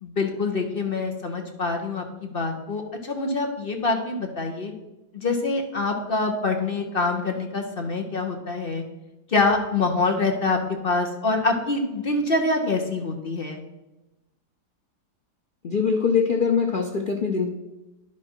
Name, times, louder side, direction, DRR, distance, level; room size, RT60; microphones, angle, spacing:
voice 1, 0.0-4.7 5.1-8.8 9.3-13.6, left 3 dB, 40° left, 3 dB, 0.9 m, -25 dB
voice 2, 15.6-17.5, left 5 dB, 85° left, 2 dB, 0.4 m, -22 dB
10.5 x 6.1 x 4.4 m, 1.0 s
omnidirectional pair, 1.8 m